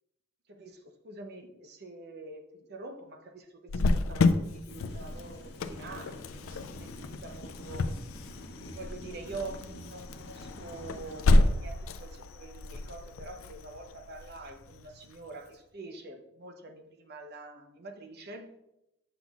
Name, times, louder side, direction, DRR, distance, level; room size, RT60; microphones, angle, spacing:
voice 1, 0.5-7.9 8.7-18.5, right 3 dB, 55° right, 5 dB, 0.8 m, -45 dB
Cricket, 3.7-15.1, left 2 dB, 90° left, 0.4 m, -30 dB
sound 1, 4.7-11.2, left 1 dB, 55° left, 0.8 m, -47 dB
7.0 x 5.9 x 2.4 m, 0.86 s
head